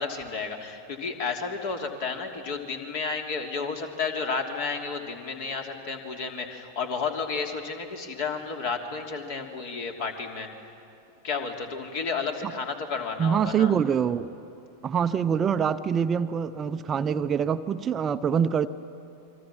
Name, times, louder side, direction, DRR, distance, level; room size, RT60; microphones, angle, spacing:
voice 1, 0.0-10.5 11.2-13.7, left 5 dB, 50° left, 4 dB, 2.9 m, -32 dB
voice 2, 13.2-14.3 14.8-18.7, right 7 dB, 25° right, 11 dB, 0.6 m, -25 dB
28.5 x 23.5 x 7.5 m, 2.8 s
figure-of-eight pair, 90°, 0 cm